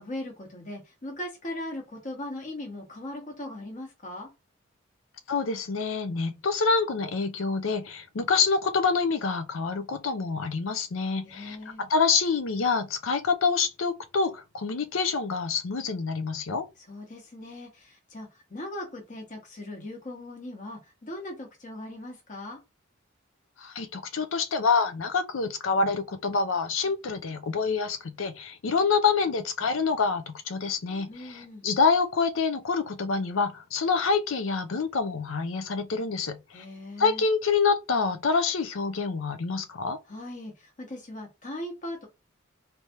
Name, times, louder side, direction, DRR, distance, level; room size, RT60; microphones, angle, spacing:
voice 1, 0.0-4.3 11.2-11.8 16.8-22.6 31.1-31.7 36.5-37.2 40.1-42.1, left 1 dB, 40° left, 1.0 m, -39 dB
voice 2, 5.3-16.7 23.6-36.6 37.0-40.0, left 5 dB, 80° left, 0.6 m, -27 dB
3.3 x 3.2 x 2.9 m
head